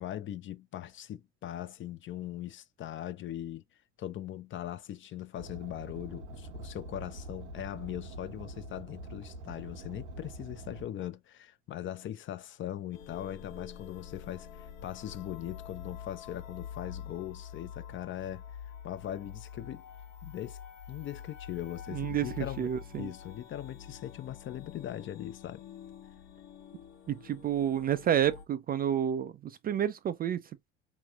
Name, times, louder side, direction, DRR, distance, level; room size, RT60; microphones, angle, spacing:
voice 1, 0.0-3.6 4.0-18.4 18.8-19.8 20.2-20.6 20.9-22.7 23.0-25.6, left 12 dB, 35° left, 0.6 m, -40 dB
Car, 5.3-10.8, right 1 dB, 85° right, 1.0 m, -45 dB
sound 1, 12.9-28.5, left 8 dB, 65° left, 1.1 m, -46 dB
voice 2, 21.9-23.1 27.1-30.4, right 10 dB, 25° right, 0.4 m, -30 dB
4.8 x 3.0 x 2.4 m
hypercardioid pair, 70°, 34 cm